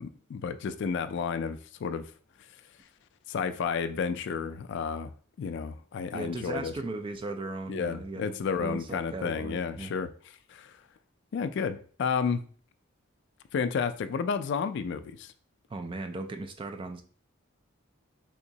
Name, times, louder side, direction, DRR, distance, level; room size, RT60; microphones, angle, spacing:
voice 1, 0.0-2.1 3.3-5.1 5.4-6.7 7.7-10.1 10.5-10.7 11.3-12.5 13.5-15.3, left 6 dB, 60° left, 0.3 m, -31 dB
voice 2, 6.1-9.9 15.7-17.0, right 2 dB, 25° right, 0.3 m, -37 dB
3.5 x 2.9 x 2.7 m
head